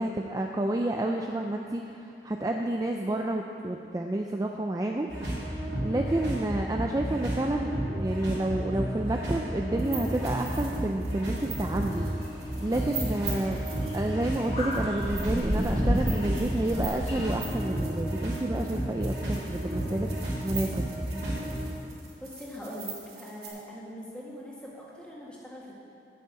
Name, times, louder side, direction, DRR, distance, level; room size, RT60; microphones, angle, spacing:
voice 1, 0.0-5.1 5.4-13.6 13.9-20.1 20.4-20.9, right 1 dB, 20° right, 2 dB, 0.4 m, -30 dB
sound 1, 5.1-21.7, right 1 dB, 85° right, 2.9 m, -32 dB
sound 2, 9.8-23.5, right 7 dB, 60° right, 2.4 m, -43 dB
sound 3, 11.9-17.3, equal, 40° left, 1.8 m, -32 dB
voice 2, 22.2-25.7, equal, 5° left, -6 dB, 1.8 m, -42 dB
8.4 x 6.9 x 8.2 m, 2.5 s
head